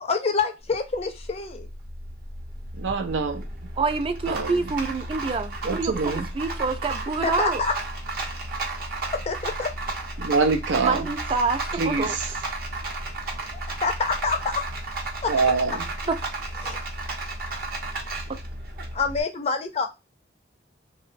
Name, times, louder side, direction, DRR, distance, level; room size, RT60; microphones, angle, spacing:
voice 1, 0.0-1.7 7.2-7.7 9.3-9.7 13.8-14.6 15.2-15.3 16.6-16.8 18.9-19.9, left 4 dB, 35° left, 0.4 m, -26 dB
Rattle, 0.6-19.2, right 2 dB, 55° right, 0.7 m, -33 dB
voice 2, 2.7-3.5 4.3-4.6 5.6-6.3 10.2-11.1 11.8-12.3 15.3-15.9, right 4 dB, 90° right, 0.5 m, -25 dB
voice 3, 3.8-5.9 6.3-7.6 10.8-12.2 16.1-16.2 18.3-18.4, right 4 dB, 30° right, 0.3 m, -26 dB
2.8 x 2.1 x 2.5 m
head